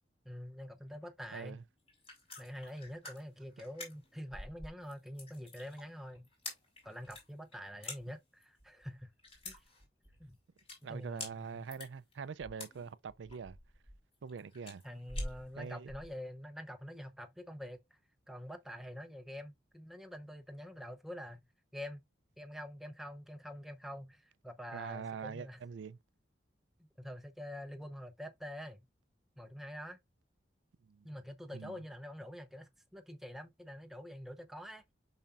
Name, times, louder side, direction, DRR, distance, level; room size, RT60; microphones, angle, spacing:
voice 1, 0.2-1.6 2.4-6.3 6.8-9.1 9.4-9.6 10.2-10.4 10.9-11.6 14.8-17.8 18.3-21.4 21.7-22.0 22.4-25.6 27.0-28.8 29.4-30.0 31.0-34.9, equal, ahead, 0.6 m, -46 dB
voice 2, 1.3-1.6 10.8-13.6 14.2-14.8 15.6-15.9 24.7-26.0 30.8-31.1 31.5-31.8, right 6 dB, 85° right, 0.4 m, -44 dB
sound 1, 1.8-16.1, left 2 dB, 30° left, 3.5 m, -47 dB
7.2 x 5.7 x 2.5 m
head